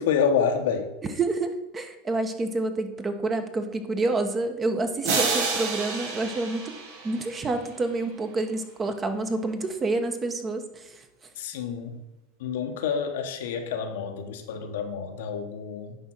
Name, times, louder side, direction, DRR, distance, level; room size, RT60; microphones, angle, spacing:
voice 1, 0.0-0.9 11.4-12.0 12.4-16.0, left 6 dB, 80° left, 6 dB, 1.0 m, -28 dB
voice 2, 1.0-6.7 7.0-11.0, right 2 dB, 25° right, 8 dB, 1.0 m, -28 dB
sound 1, 5.0-7.7, right 4 dB, 70° right, 1.7 m, -29 dB
9.9 x 3.7 x 6.0 m, 1.0 s
hypercardioid pair, 100°, 0 cm